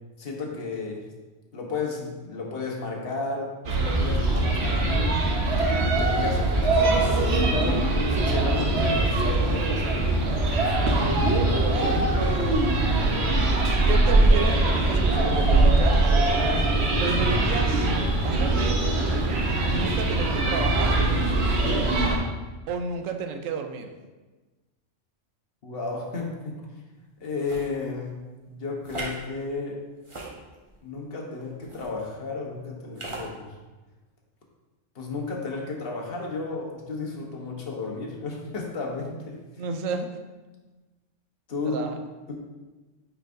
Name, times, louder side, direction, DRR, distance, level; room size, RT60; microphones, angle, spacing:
voice 1, 0.2-1.0 1.5-5.1 5.4-9.9 25.6-26.5 27.2-28.1 28.5-29.8 30.8-33.5 34.9-39.4 41.5-41.8 42.3-42.4, left 3 dB, 50° left, -1 dB, 1.2 m, -33 dB
sound 1, 3.7-22.2, right 2 dB, 60° right, 1.1 m, -22 dB
voice 2, 11.5-12.1 13.9-16.0 17.0-17.9 18.2-18.8 19.6-20.9 22.7-23.9 39.6-40.1 41.6-42.0, right 5 dB, 90° right, 5 dB, 1.0 m, -31 dB
sound 2, 27.4-27.7 28.8-29.2 30.0-30.8 31.6-31.9 32.9-33.3, right 2 dB, 25° right, 1.1 m, -37 dB
8.9 x 4.6 x 2.6 m, 1.2 s
omnidirectional pair, 1.3 m